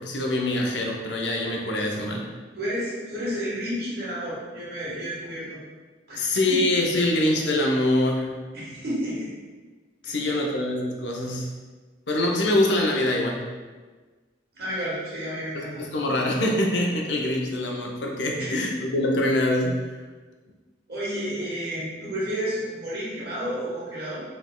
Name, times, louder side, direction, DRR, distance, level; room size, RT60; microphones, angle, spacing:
voice 1, 0.0-2.3 6.2-8.4 10.0-11.5 12.1-13.5 15.5-20.0, left 1 dB, 80° left, 0 dB, 0.7 m, -24 dB
voice 2, 2.6-5.6 6.1-6.6 8.5-9.3 10.0-10.2 14.5-15.8 18.4-18.5 20.9-24.2, equal, 60° right, -8 dB, 1.3 m, -31 dB
5.0 x 3.4 x 2.2 m, 1.3 s
head